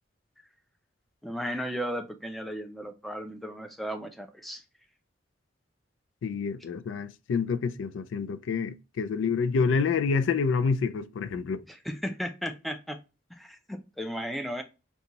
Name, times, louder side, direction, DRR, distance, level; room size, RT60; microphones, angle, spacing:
voice 1, 1.2-4.6 11.7-13.0 13.3-14.6, equal, ahead, 0.4 m, -35 dB
voice 2, 6.2-11.6, left 5 dB, 85° left, 0.3 m, -28 dB
3.8 x 2.3 x 2.8 m
head